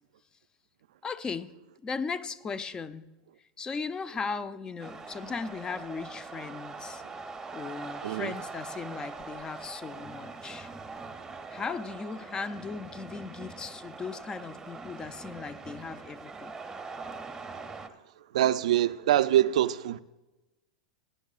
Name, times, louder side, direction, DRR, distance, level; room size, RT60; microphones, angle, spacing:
voice 1, 1.0-1.5 1.8-3.1 3.6-7.0 7.5-10.7 11.5-16.6, left 5 dB, 20° left, 0.5 m, -37 dB
sound 1, 4.8-17.9, right 4 dB, 10° right, 0.8 m, -42 dB
voice 2, 18.3-20.0, right 12 dB, 80° right, 0.4 m, -24 dB
16.5 x 9.9 x 2.4 m
hypercardioid pair, 115°, 4 cm